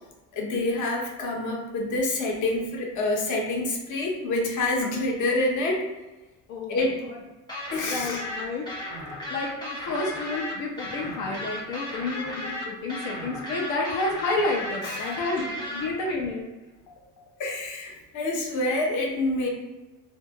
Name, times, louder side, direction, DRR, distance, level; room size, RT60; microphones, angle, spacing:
voice 1, 0.3-5.8 6.7-7.0 7.7-8.2 14.9-15.4 17.4-19.5, left 2 dB, 55° left, -1 dB, 0.8 m, -27 dB
sound 1, 7.5-15.8, left 1 dB, 10° left, 0.7 m, -35 dB
voice 2, 7.9-8.7 9.3-15.4 15.7-16.5, left 2 dB, 85° left, -2 dB, 0.6 m, -30 dB
2.8 x 2.3 x 2.7 m, 1.1 s
cardioid pair, 115°, 36 cm